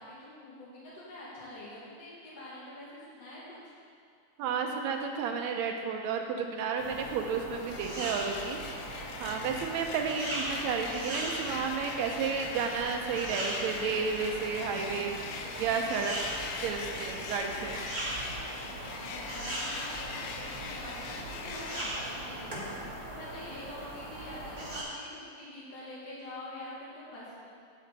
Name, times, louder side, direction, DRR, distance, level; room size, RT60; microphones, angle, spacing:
voice 1, 0.0-3.6 19.0-27.5, left 1 dB, 55° left, -7 dB, 3.2 m, -45 dB
voice 2, 4.4-8.6 8.9-16.2 16.6-17.8, right 6 dB, 75° right, 4 dB, 1.9 m, -32 dB
sound 1, 6.8-24.8, right 1 dB, 25° right, 1.1 m, -39 dB
sound 2, 7.5-21.8, left 5 dB, 80° left, 1.6 m, -42 dB
sound 3, 14.2-21.5, left 1 dB, 30° left, 2.4 m, -50 dB
8.5 x 8.3 x 4.0 m, 2.3 s
omnidirectional pair, 3.4 m